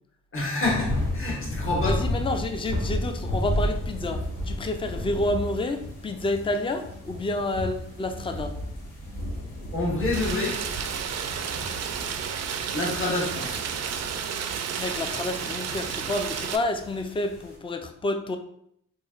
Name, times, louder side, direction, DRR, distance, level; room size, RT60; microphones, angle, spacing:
voice 1, 0.3-1.9 9.7-10.6 12.7-13.6, left 2 dB, 40° left, -3 dB, 1.3 m, -27 dB
sound 1, 0.6-17.5, left 1 dB, 70° left, 1.0 m, -33 dB
voice 2, 1.8-8.5 14.8-18.4, left 2 dB, 15° left, 6 dB, 0.4 m, -29 dB
Rain, 10.1-16.6, right 7 dB, 50° right, 0.4 m, -31 dB
3.6 x 3.0 x 2.4 m, 0.70 s
cardioid pair, 60°, 33 cm